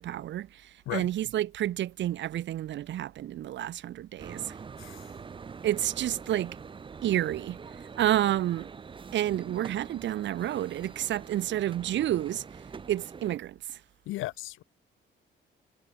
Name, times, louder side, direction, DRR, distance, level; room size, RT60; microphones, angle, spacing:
voice 1, 0.0-4.6 5.6-6.6 7.0-7.6 8.0-8.7 9.1-12.4 12.9-13.8, right 12 dB, 65° right, 0.7 m, -30 dB
sound 1, 4.2-13.4, right 5 dB, 25° right, 0.5 m, -44 dB
voice 2, 14.1-14.6, left 17 dB, 90° left, 1.1 m, -35 dB
cardioid pair, 90°, 20 cm